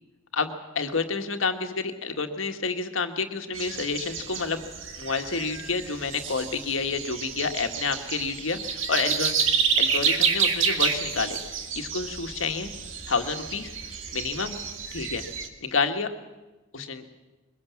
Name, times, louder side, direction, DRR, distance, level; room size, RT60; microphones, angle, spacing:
voice 1, 0.3-4.6 5.0-9.3 9.8-11.4 11.7-12.7 13.1-13.7 14.1-14.6 14.9-15.2 15.6-16.1 16.7-17.0, left 4 dB, 80° left, 6 dB, 1.7 m, -29 dB
sound 1, 3.5-15.5, right 6 dB, 75° right, 1.9 m, -29 dB
22.5 x 21.5 x 7.3 m, 1.1 s
head